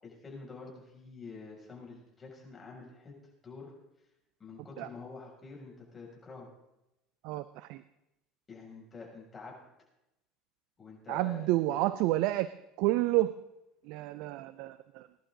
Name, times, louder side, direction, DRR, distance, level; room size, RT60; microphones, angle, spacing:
voice 1, 0.0-3.1 3.4-3.7 4.4-6.5 8.5-9.6 10.8-11.8, left 4 dB, 25° left, -2 dB, 6.6 m, -47 dB
voice 2, 7.2-7.8 11.1-12.5 12.8-13.3 13.9-15.1, right 17 dB, 65° right, 15 dB, 0.5 m, -29 dB
20.5 x 11.0 x 3.9 m, 0.89 s
hypercardioid pair, 75°, 0 cm